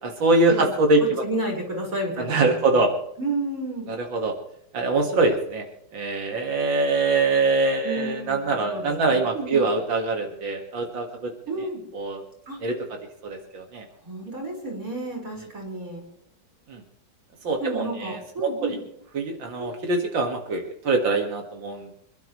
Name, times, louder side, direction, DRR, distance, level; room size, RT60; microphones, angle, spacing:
voice 1, 0.0-1.2 2.2-2.9 3.9-4.3 4.7-5.6 5.9-11.3 11.9-12.2 12.6-12.8 13.2-13.9 16.7-16.8 17.4-18.8 19.1-21.9, right 3 dB, 90° right, 2 dB, 2.6 m, -23 dB
voice 2, 1.2-2.8 3.2-3.9 7.8-9.6 11.5-11.8 12.5-12.6 14.0-16.1 17.6-18.8 19.6-19.7, right 2 dB, 45° right, -1 dB, 5.5 m, -31 dB
27.0 x 12.0 x 3.1 m, 0.76 s
omnidirectional pair, 2.0 m